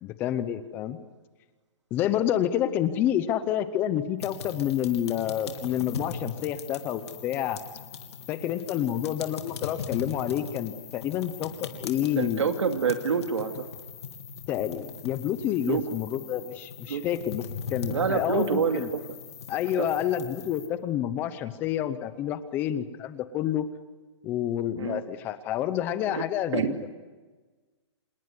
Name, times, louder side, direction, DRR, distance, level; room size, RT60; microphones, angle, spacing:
voice 1, 0.0-1.0 1.9-7.6 8.3-12.5 14.5-17.4 17.7-18.9 19.5-23.7 24.2-26.9, left 11 dB, 15° left, 13 dB, 0.7 m, -29 dB
sound 1, 4.2-20.7, left 6 dB, 60° left, 3.4 m, -40 dB
voice 2, 12.2-13.6 15.7-15.8 16.9-17.0 17.9-19.0 19.8-19.9 24.8-25.0 26.1-26.2 26.5-26.8, right 6 dB, 80° right, 6 dB, 2.5 m, -27 dB
27.0 x 20.5 x 9.7 m, 1.3 s
hypercardioid pair, 175°, 15 cm